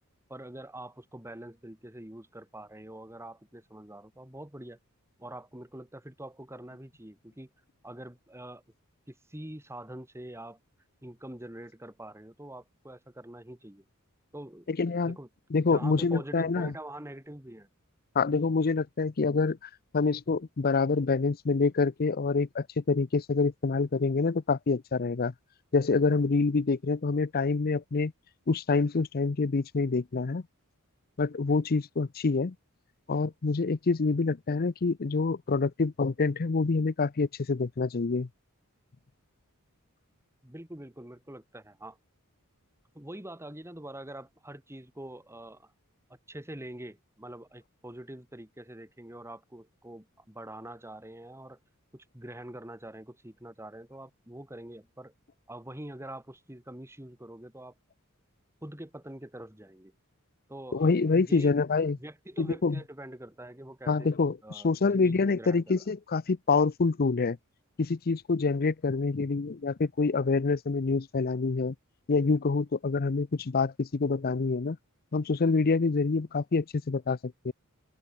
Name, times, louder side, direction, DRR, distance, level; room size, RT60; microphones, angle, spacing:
voice 1, 0.3-4.8 5.2-7.5 7.8-8.6 9.1-10.6 11.0-13.8 14.3-14.7 15.0-15.3 15.6-17.7 40.4-42.0 42.9-45.7 46.1-51.6 51.9-55.1 55.5-57.7 58.6-59.9 60.5-60.9 61.2-61.5 62.0-64.1 64.4-65.8, right 1 dB, 10° right, 2.6 m, -44 dB
voice 2, 14.7-15.2 15.5-16.7 18.1-25.3 25.7-28.1 28.5-30.4 31.2-32.5 33.1-38.3 60.7-62.0 62.4-62.8 63.9-67.4 67.8-71.7 72.1-74.8 75.1-77.5, left 4 dB, 45° left, 0.6 m, -26 dB
open air
head